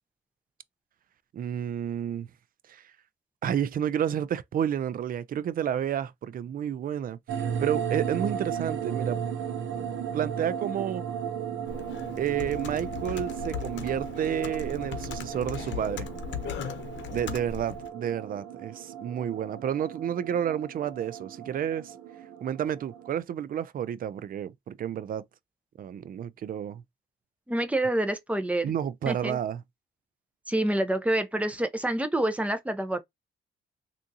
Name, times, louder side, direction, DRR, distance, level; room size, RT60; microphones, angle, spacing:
voice 1, 1.3-2.3 2.7-2.8 3.4-9.2 10.1-11.0 12.2-16.1 17.1-21.9 22.4-25.3 25.8-26.8 28.6-29.6, right 9 dB, 45° right, 0.4 m, -30 dB
sound 1, 7.3-23.2, right 8 dB, 70° right, 0.8 m, -35 dB
Computer keyboard, 11.7-17.9, left 8 dB, 70° left, 0.8 m, -38 dB
voice 2, 27.5-28.7 29.1-29.4 30.5-33.0, right 1 dB, 5° right, 0.7 m, -27 dB
3.5 x 2.5 x 2.7 m
cardioid pair, 90°, 20 cm